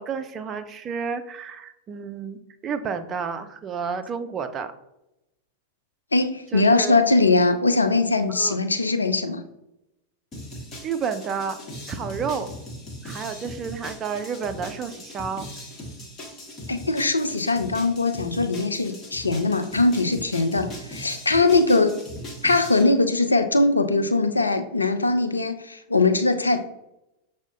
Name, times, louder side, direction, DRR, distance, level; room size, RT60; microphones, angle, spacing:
voice 1, 0.0-4.7 6.5-7.0 8.4-8.6 10.8-11.6 11.9-12.5 13.0-15.5, right 6 dB, 25° right, 8 dB, 0.4 m, -31 dB
voice 2, 6.1-9.4 16.7-22.0 22.4-26.6, left 3 dB, 80° left, 8 dB, 0.4 m, -21 dB
sound 1, 10.3-22.8, equal, 25° left, 1.1 m, -39 dB
6.1 x 2.1 x 3.8 m, 0.89 s
figure-of-eight pair, 90°, 0 cm